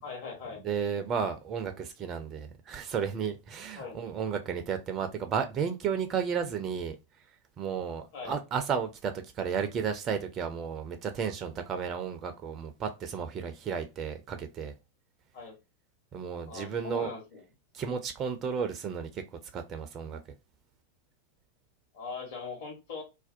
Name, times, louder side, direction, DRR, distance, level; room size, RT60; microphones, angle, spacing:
voice 1, 0.0-0.6 3.8-4.0 8.1-8.4 15.3-15.5 16.4-17.4 21.9-23.0, left 4 dB, 55° left, 1.1 m, -40 dB
voice 2, 0.6-7.0 7.6-14.7 16.1-17.1 17.7-19.2 19.5-20.2, right 7 dB, 30° right, 0.3 m, -33 dB
2.5 x 2.1 x 2.4 m
figure-of-eight pair, 90°, 0 cm